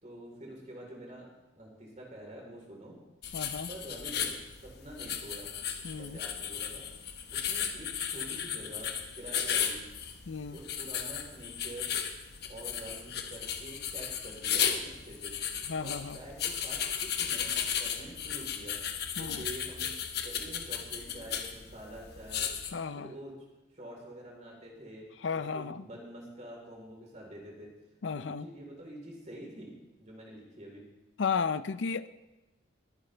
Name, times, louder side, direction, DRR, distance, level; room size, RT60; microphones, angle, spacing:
voice 1, 0.0-3.0 3.7-5.5 5.9-6.8 7.3-9.9 10.5-11.9 12.4-15.4 15.8-18.8 19.2-19.9 20.2-23.4 23.7-25.0 25.3-27.7 28.2-29.7 30.0-30.9, right 1 dB, 35° right, -1 dB, 3.9 m, -47 dB
sound 1, 3.2-22.7, left 8 dB, 55° left, 1.1 m, -35 dB
voice 2, 3.3-3.7 5.8-6.2 10.3-10.6 15.7-16.2 19.2-19.4 22.7-23.1 25.2-25.9 28.0-28.5 31.2-32.1, left 5 dB, 70° left, 15 dB, 0.5 m, -34 dB
21.5 x 9.7 x 3.4 m, 1.0 s
head